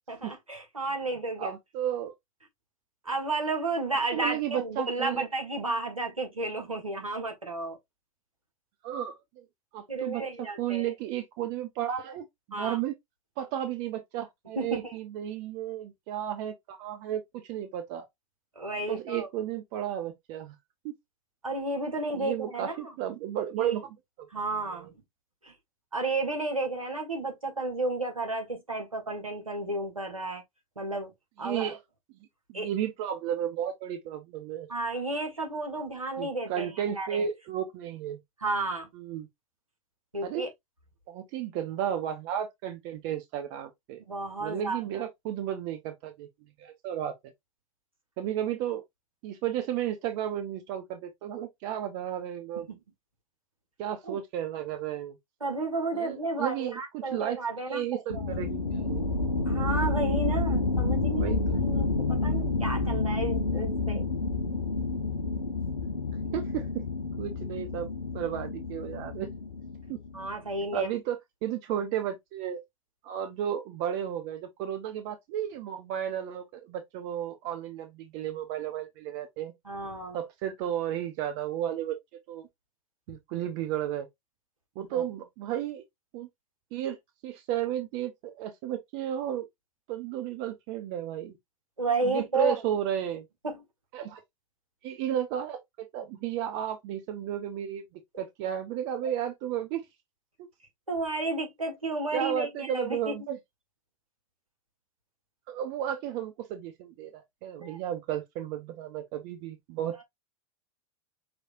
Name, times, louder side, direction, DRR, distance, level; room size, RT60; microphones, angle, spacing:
voice 1, 0.1-1.5 3.1-7.8 9.9-10.9 12.5-12.8 14.6-14.9 18.6-19.3 21.4-22.9 23.6-23.8 24.3-24.9 25.4-25.5 25.9-30.4 30.8-31.1 31.4-31.8 32.5-32.7 34.7-37.3 38.4-38.9 40.1-40.5 44.1-45.0 52.7-52.8 54.1-54.2 55.4-58.3 59.5-61.4 61.6-64.1 70.1-70.9 79.7-80.2 84.8-85.0 91.8-92.6 93.4-93.6 100.9-103.1 107.6-107.8, right 2 dB, 85° right, 1.9 m, -32 dB
voice 2, 1.4-2.1 4.1-5.2 8.8-9.4 9.7-10.2 10.6-12.9 13.4-17.2 17.5-18.1 18.9-20.6 20.8-20.9 22.1-24.3 24.7-24.9 31.4-31.8 32.5-34.7 36.2-38.2 38.9-39.3 40.2-40.5 41.1-44.0 44.4-46.3 46.6-47.1 48.2-48.8 49.2-52.7 53.8-55.2 55.9-59.0 61.1-61.6 66.3-66.8 67.2-69.3 69.9-70.0 70.7-72.6 73.0-79.5 80.1-82.0 82.3-82.5 83.1-84.1 84.8-85.8 86.1-86.3 86.7-87.0 87.2-89.5 89.9-91.4 92.0-93.3 93.9-94.2 94.8-97.8 98.2-99.8 102.1-103.4 105.5-110.0, right 10 dB, 40° right, 0.9 m, -33 dB
sound 1, 58.1-70.4, left 3 dB, 85° left, 0.7 m, -29 dB
6.0 x 3.2 x 2.6 m
figure-of-eight pair, 90°, 17 cm